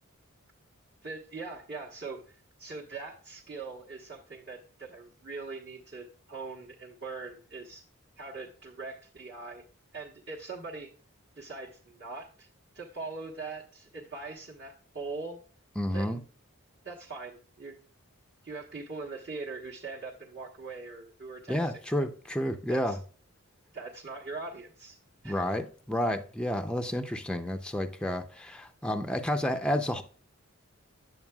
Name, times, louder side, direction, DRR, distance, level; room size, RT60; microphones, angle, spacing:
voice 1, 1.0-7.8 8.2-9.6 9.9-10.9 11.3-12.5 12.7-15.4 15.9-16.2 16.8-17.8 18.4-21.8 22.7-23.0 23.7-25.0 25.2-25.4, right 3 dB, 50° right, 1.2 m, -41 dB
voice 2, 15.8-16.2 21.5-22.9 25.2-30.0, left 1 dB, 5° left, 0.4 m, -30 dB
8.9 x 6.6 x 2.3 m
head